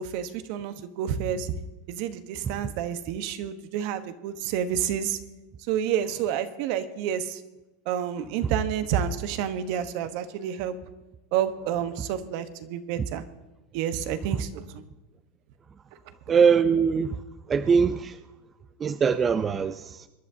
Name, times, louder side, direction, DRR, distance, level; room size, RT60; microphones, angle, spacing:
voice 1, 0.0-1.5 1.9-5.2 5.7-7.4 7.9-10.8 11.3-13.2 13.7-14.6, right 9 dB, 60° right, 10 dB, 1.1 m, -29 dB
voice 2, 16.3-17.2 17.5-18.2 18.8-20.1, right 6 dB, 25° right, 10 dB, 0.5 m, -22 dB
25.5 x 11.0 x 2.8 m, 1.1 s
hypercardioid pair, 115°, 0 cm